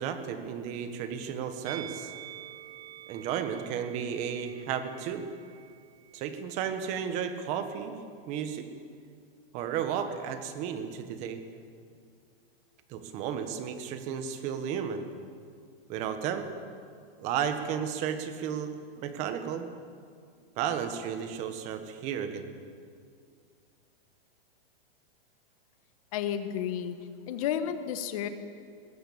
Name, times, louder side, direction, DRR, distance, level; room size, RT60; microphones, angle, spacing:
voice 1, 0.0-2.1 3.1-5.2 6.1-8.0 8.3-8.7 9.5-11.4 12.9-15.1 15.9-16.5 17.2-18.7 19.0-19.7 20.6-22.5, right 8 dB, 25° right, 9 dB, 1.3 m, -33 dB
Musical instrument, 1.6-6.9 7.1-7.4, right 12 dB, 90° right, 1.3 m, -48 dB
voice 2, 26.1-27.0 27.3-28.3, left 9 dB, 35° left, 10 dB, 1.3 m, -31 dB
20.5 x 15.5 x 8.6 m, 2.2 s
supercardioid pair, 170°, 30 cm